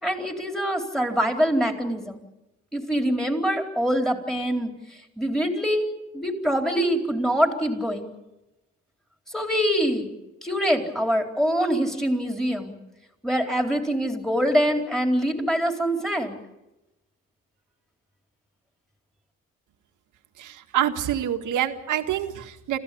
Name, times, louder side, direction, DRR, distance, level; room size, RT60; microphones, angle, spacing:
voice 1, 0.0-2.2 2.7-4.7 5.2-5.9 6.1-8.1 9.3-10.1 10.4-12.8 13.2-16.4, equal, ahead, 3 dB, 4.1 m, -24 dB
voice 2, 20.4-22.8, right 11 dB, 80° right, 6 dB, 1.9 m, -26 dB
26.5 x 15.5 x 8.6 m, 0.97 s
cardioid pair, 90°, 30 cm